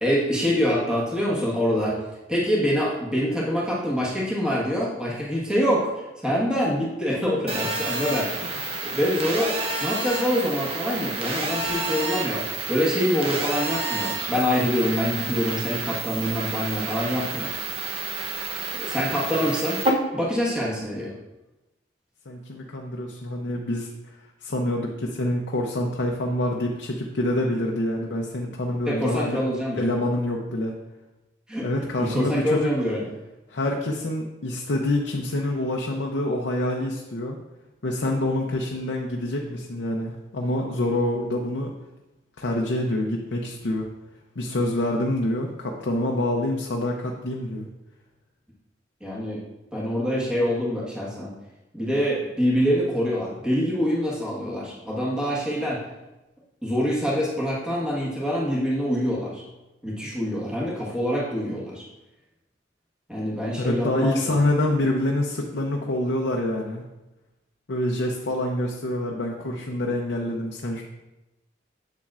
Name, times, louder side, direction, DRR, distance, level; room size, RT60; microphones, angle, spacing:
voice 1, 0.0-2.0 2.3-8.3 8.8-9.5 9.8-17.5 18.7-19.8 20.1-21.1 28.8-29.9 31.5-31.7 32.0-33.0 49.0-49.4 49.7-51.3 51.7-55.8 56.6-59.4 59.8-61.8 63.1-64.3, equal, 5° right, -6 dB, 1.4 m, -25 dB
Telephone, 7.5-19.9, right 3 dB, 30° right, 0.8 m, -30 dB
voice 2, 22.3-23.9 24.4-29.4 29.8-30.7 31.6-32.7 33.5-37.4 37.8-41.7 42.4-43.9 44.4-47.7 63.6-66.8 67.7-70.8, left 1 dB, 70° left, 0 dB, 0.6 m, -26 dB
7.6 x 7.1 x 2.5 m, 1.0 s
head